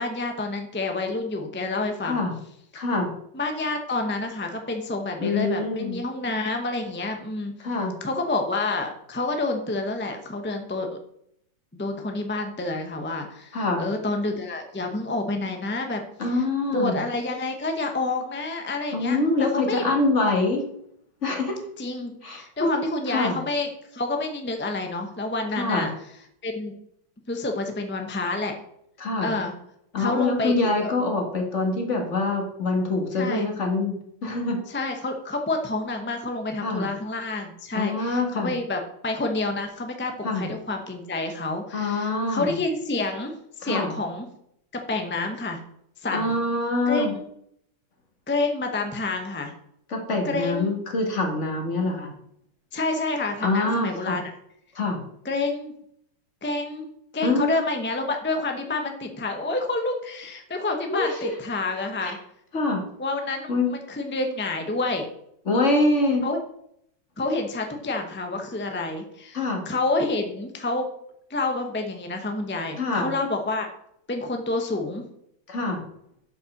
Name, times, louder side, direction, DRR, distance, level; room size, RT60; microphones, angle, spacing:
voice 1, 0.0-2.2 2.7-2.8 3.3-7.5 8.0-10.9 11.7-16.0 16.7-19.9 21.8-25.9 26.4-26.7 27.3-28.6 29.2-29.5 30.0-30.9 33.2-33.5 34.7-43.3 43.6-44.3 44.7-45.6 46.0-46.4 46.9-47.2 48.3-49.5 50.2-50.7 52.7-54.2 55.2-55.7 56.4-62.2 63.0-65.1 66.2-66.4 67.2-70.9 71.3-73.7 74.1-75.0, left 2 dB, 15° left, 4 dB, 0.4 m, -28 dB
voice 2, 2.7-3.1 5.2-6.0 7.6-7.9 13.5-13.8 16.2-17.0 18.9-20.6 21.2-21.6 22.2-23.4 25.6-25.9 29.0-29.3 29.9-34.6 36.6-36.9 37.8-38.5 40.2-40.5 41.7-42.5 43.6-43.9 46.1-47.2 49.9-52.1 53.4-54.2 54.7-55.0 57.2-57.4 60.9-61.3 62.0-62.1 62.5-62.8 63.5-63.7 65.5-66.3 69.3-69.6 72.8-73.1 75.5-75.8, left 2 dB, 40° left, 2 dB, 1.9 m, -25 dB
7.6 x 5.5 x 6.5 m, 0.73 s
omnidirectional pair, 2.1 m